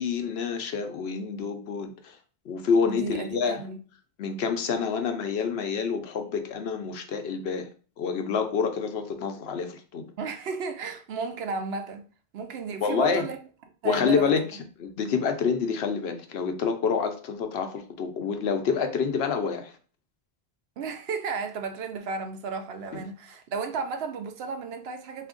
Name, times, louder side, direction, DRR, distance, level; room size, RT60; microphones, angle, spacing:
voice 1, 0.0-2.2 2.5-3.6 4.2-7.7 8.0-10.1 12.8-13.2 13.8-14.5 14.8-19.8 22.9-23.0, left 6 dB, 80° left, 0.9 m, -27 dB
voice 2, 2.8-3.8 10.2-12.0 12.3-13.4 13.8-14.3 20.8-25.3, right 4 dB, 75° right, 0.8 m, -33 dB
3.5 x 2.7 x 3.7 m
omnidirectional pair, 1.1 m